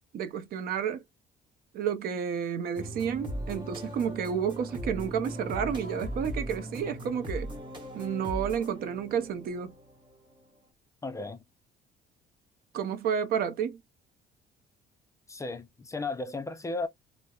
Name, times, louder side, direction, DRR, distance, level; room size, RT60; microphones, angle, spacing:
voice 1, 0.1-1.0 1.7-7.5 7.9-9.7 12.7-13.8, right 7 dB, 60° right, 0.5 m, -31 dB
sound 1, 2.8-10.5, equal, 30° right, 1.0 m, -39 dB
voice 2, 11.0-11.4 15.3-16.9, left 3 dB, 20° left, 0.4 m, -34 dB
2.8 x 2.0 x 2.2 m
cardioid pair, 110°, 17 cm